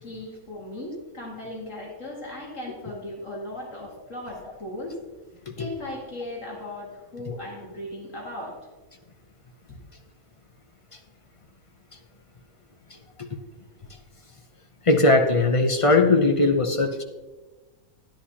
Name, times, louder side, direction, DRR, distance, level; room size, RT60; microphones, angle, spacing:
voice 1, 0.0-5.1 5.6-8.6, left 1 dB, 60° left, -3 dB, 2.3 m, -37 dB
voice 2, 14.9-17.0, left 2 dB, 35° left, 4 dB, 0.5 m, -19 dB
11.0 x 10.5 x 2.9 m, 1.2 s
omnidirectional pair, 1.5 m